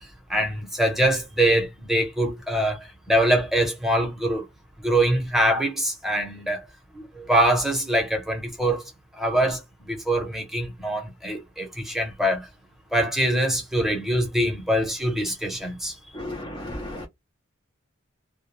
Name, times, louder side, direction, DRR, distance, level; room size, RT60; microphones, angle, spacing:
voice 1, 0.3-4.4 4.8-6.7 6.9-8.9 9.2-12.5 12.9-16.0, right 1 dB, ahead, 0.8 m, -24 dB
voice 2, 16.2-17.1, left 1 dB, 20° left, 0.5 m, -34 dB
2.2 x 2.1 x 3.0 m
head